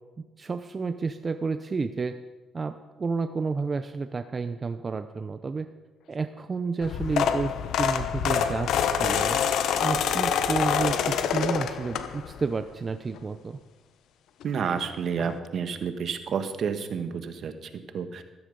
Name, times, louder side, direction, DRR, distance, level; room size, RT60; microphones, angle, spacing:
voice 1, 0.2-2.2 2.5-5.7 6.1-7.5 7.8-13.6, right 4 dB, 35° right, 9 dB, 0.7 m, -31 dB
sound 1, 6.8-12.4 12.9-13.2 14.4-14.5 14.7-14.8 15.2-15.3, left 8 dB, 80° left, 1.1 m, -26 dB
voice 2, 14.4-18.2, right 6 dB, 60° right, 9 dB, 1.4 m, -30 dB
14.0 x 14.0 x 5.3 m, 1.2 s
cardioid pair, 90°, 0 cm